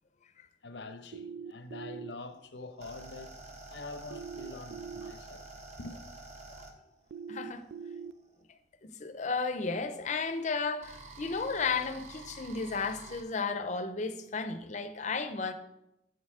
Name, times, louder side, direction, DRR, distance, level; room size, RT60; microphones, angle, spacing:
voice 1, 0.6-3.4 3.7-5.5 5.8-6.0, left 3 dB, 80° left, 0.8 m, -45 dB
sound 1, 1.1-2.1 4.1-5.1 7.1-8.1, right 6 dB, 75° right, 0.3 m, -42 dB
sound 2, 2.2-8.4 9.4-13.2, right 3 dB, 40° right, 1.1 m, -49 dB
voice 2, 7.3-7.6 8.8-15.5, left 4 dB, 40° left, 0.6 m, -33 dB
7.9 x 6.6 x 4.8 m
head